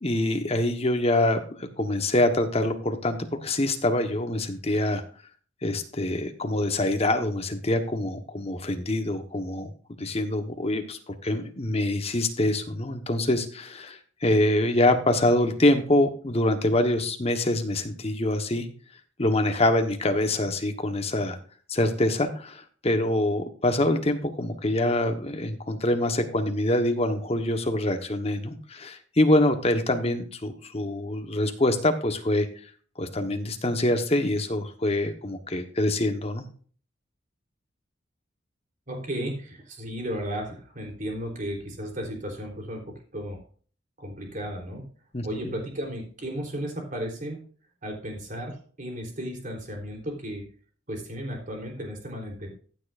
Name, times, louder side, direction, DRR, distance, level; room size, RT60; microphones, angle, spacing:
voice 1, 0.0-5.0 5.6-9.7 10.0-18.7 19.2-21.4 21.7-32.5 33.0-36.5 45.1-45.6, left 1 dB, 35° left, 7 dB, 1.3 m, -25 dB
voice 2, 38.9-42.8 43.1-43.4 44.0-44.8 45.2-47.4 47.8-50.4 50.9-52.5, equal, 45° right, 1 dB, 3.7 m, -34 dB
15.0 x 9.0 x 2.6 m, 0.42 s
head